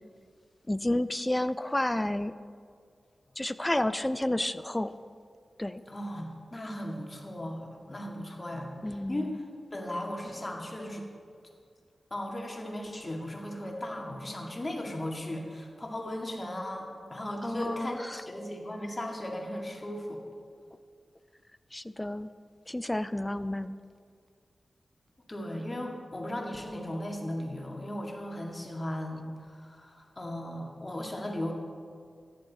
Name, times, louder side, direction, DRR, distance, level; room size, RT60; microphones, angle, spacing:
voice 1, 0.7-2.3 3.4-5.0 5.6-5.8 8.8-9.3 17.4-18.2 21.7-22.3 22.7-23.8, left 1 dB, 15° left, 13 dB, 0.4 m, -30 dB
voice 2, 5.9-9.4 9.7-11.0 12.1-20.2 25.3-31.5, left 1 dB, 35° left, 1 dB, 2.0 m, -37 dB
14.0 x 10.0 x 4.2 m, 2.2 s
cardioid pair, 60°, 0 cm